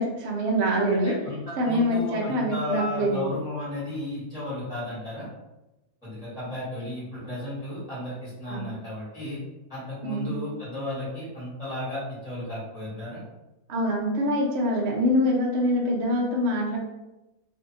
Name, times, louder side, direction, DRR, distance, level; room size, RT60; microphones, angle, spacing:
voice 1, 0.0-1.1 1.6-3.2 8.5-8.7 10.0-10.4 13.7-16.8, equal, 65° right, -1 dB, 0.7 m, -25 dB
voice 2, 0.9-5.3 6.0-9.4 9.7-13.2, left 1 dB, 5° right, -9 dB, 1.1 m, -34 dB
2.6 x 2.6 x 2.6 m, 0.99 s
omnidirectional pair, 1.5 m